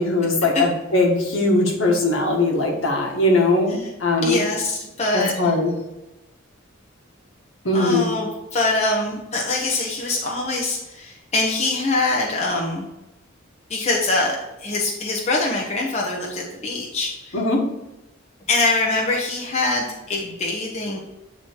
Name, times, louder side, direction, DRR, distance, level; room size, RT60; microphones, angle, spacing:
voice 1, 0.0-4.4 5.1-5.7 7.7-8.0 17.3-17.6, left 2 dB, 65° left, 0 dB, 1.7 m, -20 dB
voice 2, 4.2-5.5 7.7-12.9 13.7-17.4 18.5-21.0, left 2 dB, 30° left, -3 dB, 1.1 m, -24 dB
8.8 x 4.1 x 4.7 m, 0.98 s
head